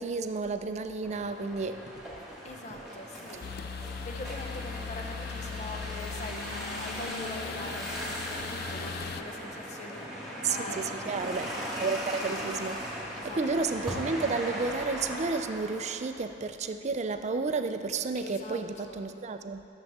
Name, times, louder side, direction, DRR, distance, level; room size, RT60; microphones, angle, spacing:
voice 1, 0.0-1.8 10.4-12.9 13.2-19.7, right 4 dB, 40° right, 9 dB, 0.4 m, -32 dB
sound 1, 1.0-15.9, equal, 5° right, 2.3 m, -38 dB
voice 2, 2.4-3.4 4.0-11.4 13.2-13.7 18.1-19.0, left 2 dB, 40° left, 3 dB, 0.9 m, -42 dB
sound 2, 3.4-9.2, left 6 dB, 55° left, 0.4 m, -39 dB
13.0 x 7.0 x 4.2 m, 2.7 s
head